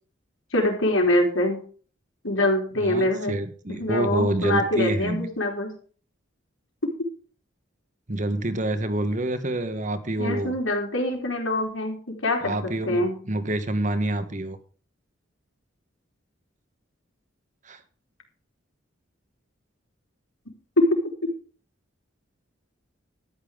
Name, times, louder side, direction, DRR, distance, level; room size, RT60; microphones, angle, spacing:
voice 1, 0.5-1.6 2.2-3.4 3.8-5.7 10.2-13.1 20.8-20.9, left 1 dB, 85° left, 1 dB, 4.4 m, -24 dB
voice 2, 2.8-5.3 8.1-10.5 12.4-14.6 17.7-17.8, right 1 dB, 40° right, 10 dB, 1.3 m, -27 dB
13.0 x 9.8 x 5.1 m, 0.42 s
head